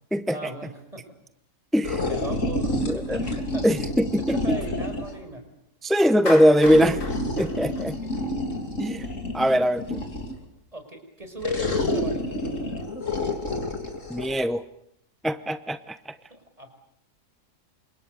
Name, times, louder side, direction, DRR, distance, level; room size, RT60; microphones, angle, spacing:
voice 1, 0.3-1.1 2.1-3.9 4.2-5.5 7.7-8.1 10.7-12.4 16.3-16.7, right 1 dB, 20° right, 6 dB, 5.5 m, -38 dB
sound 1, 1.8-5.2 6.6-10.4 11.4-14.3, left 1 dB, 50° left, 3.7 m, -29 dB
voice 2, 2.8-3.2 3.6-4.3 5.8-7.0 7.4-8.0 8.8-9.1 9.3-10.0 14.1-14.6 15.2-16.1, equal, ahead, 10 dB, 0.4 m, -21 dB
Clapping, 6.3-8.6, left 3 dB, 70° left, 4.2 m, -35 dB
29.5 x 26.0 x 6.8 m, 0.75 s
omnidirectional pair, 1.7 m